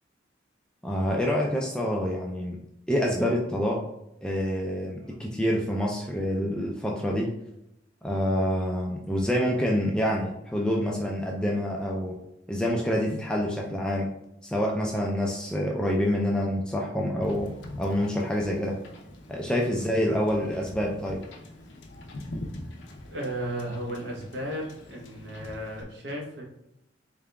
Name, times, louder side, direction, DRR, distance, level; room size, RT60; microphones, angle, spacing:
voice 1, 0.8-2.6 2.9-3.8 4.2-7.3 8.0-12.2 12.5-14.1 14.4-18.8 19.3-21.2, equal, 5° left, -2 dB, 0.3 m, -27 dB
voice 2, 5.0-5.4 19.7-19.9 23.0-26.4, right 1 dB, 70° right, -1 dB, 0.9 m, -35 dB
Wind / Boat Water vehicle, 17.2-25.8, left 1 dB, 75° left, 0.6 m, -43 dB
3.8 x 3.5 x 2.2 m, 0.83 s
head